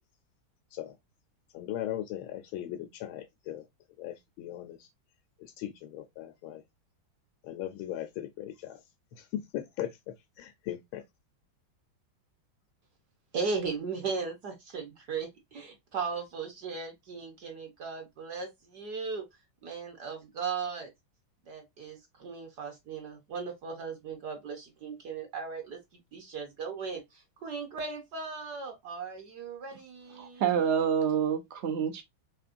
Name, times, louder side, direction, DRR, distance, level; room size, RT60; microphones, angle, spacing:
voice 1, 1.5-3.6 4.0-4.9 5.4-6.6 7.4-8.8 9.1-11.0, left 12 dB, 85° left, 1.4 m, -38 dB
voice 2, 13.3-20.9 21.5-30.7, right 5 dB, 60° right, 1.3 m, -37 dB
voice 3, 30.2-32.0, right 8 dB, 80° right, 0.6 m, -27 dB
4.3 x 3.0 x 2.5 m
omnidirectional pair, 2.2 m